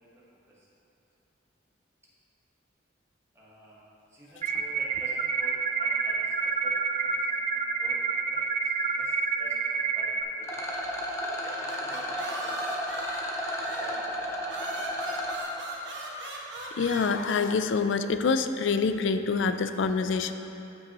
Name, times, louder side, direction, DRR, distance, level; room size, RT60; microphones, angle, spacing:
voice 1, 0.0-0.7 3.3-3.8 4.1-10.7 11.4-12.7 13.6-14.8, equal, 15° right, -6 dB, 1.3 m, -49 dB
sound 1, 4.4-10.2, right 5 dB, 35° right, 0.4 m, -28 dB
Rattle, 10.4-15.4, equal, 15° left, 0.6 m, -33 dB
sound 2, 11.2-14.1 14.5-17.1, right 2 dB, 70° right, 1.1 m, -39 dB
voice 2, 16.8-20.3, left 5 dB, 80° left, 9 dB, 0.4 m, -26 dB
13.5 x 5.5 x 3.0 m, 2.9 s
head